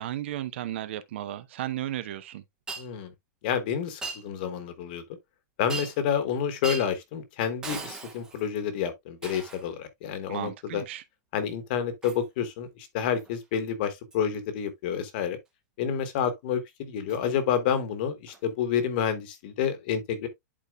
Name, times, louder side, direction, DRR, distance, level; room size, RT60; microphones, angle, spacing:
voice 1, 0.0-2.4 10.3-11.0, right 13 dB, 40° right, 0.8 m, -34 dB
Shatter, 2.7-2.9 4.0-4.2 5.7-6.1 6.6-6.9 7.6-8.5 9.2-9.7 12.0-12.2 13.2-13.4 14.1-14.3 17.1-17.2 18.3-18.4, right 4 dB, 5° right, 0.8 m, -38 dB
voice 2, 2.8-3.1 3.4-5.0 5.6-10.8 11.3-15.4 15.8-20.3, left 8 dB, 30° left, 1.2 m, -29 dB
11.5 x 4.2 x 2.3 m
hypercardioid pair, 180°, 10 cm